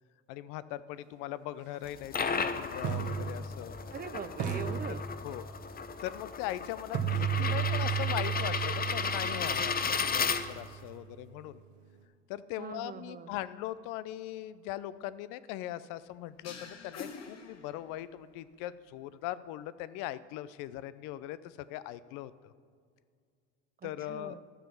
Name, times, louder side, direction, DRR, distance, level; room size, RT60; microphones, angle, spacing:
voice 1, 0.3-3.8 5.2-5.5 6.0-11.6 12.3-22.5 23.8-24.4, left 13 dB, 70° left, 16 dB, 0.6 m, -40 dB
sound 1, 1.7-1.9 2.8-4.0 4.4-5.6 6.9-10.9, right 8 dB, 60° right, 1.5 m, -34 dB
sound 2, 1.8-10.8, left 5 dB, 25° left, 0.8 m, -34 dB
voice 2, 3.9-5.0 12.6-13.3 23.8-24.4, right 7 dB, 30° right, 14 dB, 0.5 m, -42 dB
sound 3, 16.4-18.2, left 5 dB, 50° left, 1.5 m, -46 dB
12.5 x 7.0 x 5.9 m, 2.1 s
hypercardioid pair, 65°, 33 cm